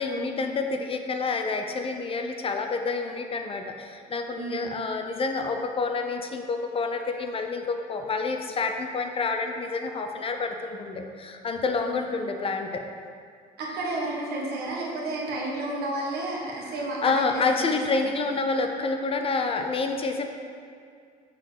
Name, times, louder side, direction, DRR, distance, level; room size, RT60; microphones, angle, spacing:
voice 1, 0.0-12.8 17.0-20.3, left 4 dB, 35° left, 5 dB, 0.5 m, -28 dB
voice 2, 13.6-17.7, right 2 dB, 70° right, -3 dB, 1.5 m, -31 dB
6.7 x 3.9 x 4.9 m, 2.2 s
cardioid pair, 110°, 17 cm